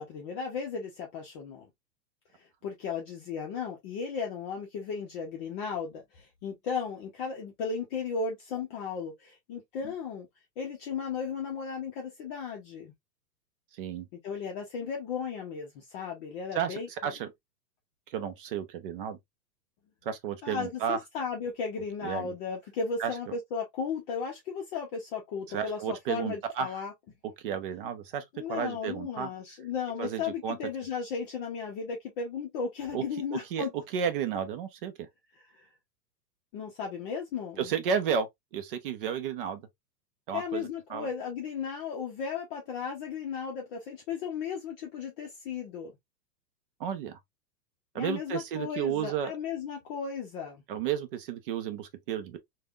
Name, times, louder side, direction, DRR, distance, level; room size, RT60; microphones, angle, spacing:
voice 1, 0.0-1.7 2.4-10.3 10.6-12.9 14.2-16.9 20.4-26.9 28.3-33.7 35.5-35.7 36.5-37.7 40.3-45.9 48.0-50.6, left 6 dB, 35° left, 0.7 m, -35 dB
voice 2, 16.5-17.3 18.1-19.2 20.1-21.0 22.0-22.3 23.0-23.1 25.5-26.7 27.4-29.3 30.0-30.6 32.9-33.0 33.3-35.1 37.6-38.3 38.5-39.6 40.3-41.1 46.8-47.2 47.9-49.3 50.7-52.4, right 8 dB, 35° right, 0.5 m, -32 dB
3.3 x 2.3 x 2.3 m
hypercardioid pair, 125°, 49 cm